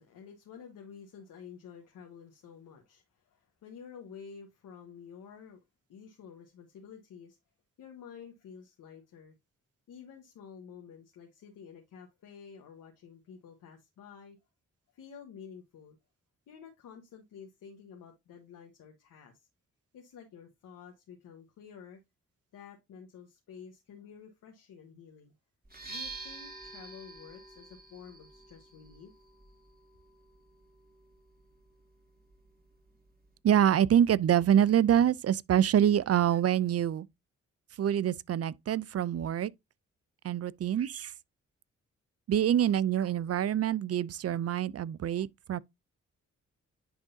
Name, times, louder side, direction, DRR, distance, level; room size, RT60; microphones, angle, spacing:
voice 1, 0.0-5.6 5.9-7.4 7.8-9.3 9.9-14.4 14.9-16.0 16.5-19.5 19.9-22.0 22.5-25.3 25.9-29.1, left 7 dB, 85° left, 1.3 m, -50 dB
sound 1, 25.6-33.4, right 3 dB, 30° right, 2.9 m, -49 dB
voice 2, 33.4-37.1 37.8-39.5 40.2-41.1 42.3-45.6, right 10 dB, 50° right, 0.5 m, -26 dB
10.5 x 3.7 x 2.7 m
supercardioid pair, 45°, 31 cm